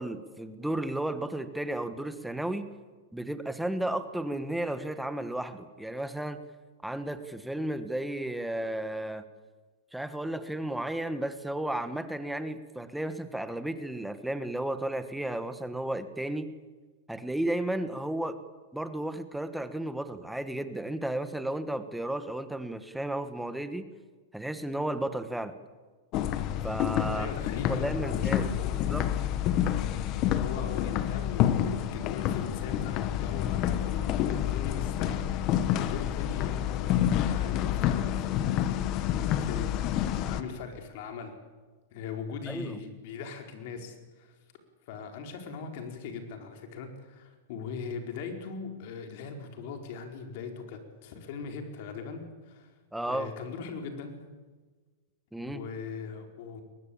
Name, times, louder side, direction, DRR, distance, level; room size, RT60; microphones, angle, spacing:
voice 1, 0.0-2.7 3.1-6.4 6.8-9.2 9.9-16.5 17.1-18.3 18.7-23.8 24.3-25.5 26.6-27.3 27.6-29.1 42.5-42.8 52.9-53.3 55.3-55.6, right 1 dB, ahead, 10 dB, 1.3 m, -33 dB
sound 1, 26.1-40.4, left 11 dB, 35° left, 1.3 m, -28 dB
voice 2, 27.1-28.8 30.4-38.3 39.2-41.3 41.9-44.4 44.9-52.8 53.0-54.1 55.4-56.6, left 5 dB, 55° left, 4 dB, 4.6 m, -40 dB
22.5 x 19.5 x 8.7 m, 1.4 s
supercardioid pair, 150°, 0 cm